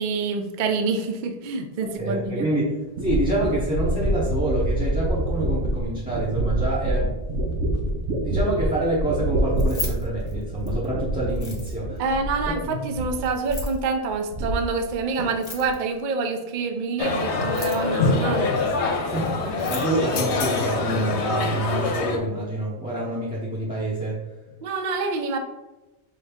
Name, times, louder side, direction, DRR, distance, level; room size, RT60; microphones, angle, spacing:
voice 1, 0.0-2.5 12.0-18.6 24.6-25.4, right 4 dB, 55° right, 6 dB, 0.6 m, -27 dB
voice 2, 1.8-12.0 12.5-12.8 19.1-24.2, right 1 dB, 10° right, -8 dB, 0.7 m, -27 dB
sound 1, 2.2-2.3 3.0-12.7 12.9-13.8 14.1-14.9 15.2-15.7, right 1 dB, 85° right, 1.0 m, -26 dB
Keys jangling, 9.5-10.9 11.3-12.0 13.3-13.8 15.3-16.0 17.3-18.0 19.2-19.3 19.5-19.9, left 2 dB, 35° left, 1.1 m, -36 dB
sound 2, 17.0-22.2, left 4 dB, 75° left, 1.0 m, -25 dB
4.7 x 2.7 x 3.4 m, 1.1 s
omnidirectional pair, 1.2 m